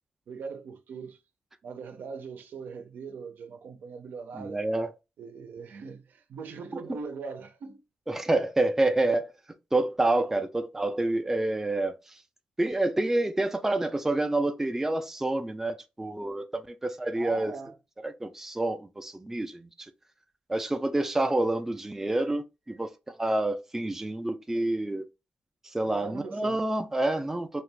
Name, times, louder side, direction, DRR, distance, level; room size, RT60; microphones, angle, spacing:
voice 1, 0.3-1.2 1.6-4.6 5.2-6.0 6.3-7.8 17.2-17.7 25.8-26.6, right 5 dB, 75° right, 0.5 m, -40 dB
voice 2, 4.3-4.9 6.7-7.0 8.1-9.3 9.7-12.2 12.6-17.5 18.0-19.7 20.5-25.0 25.7-27.6, right 2 dB, 10° right, 0.4 m, -28 dB
2.8 x 2.4 x 3.2 m
cardioid pair, 100°, 3 cm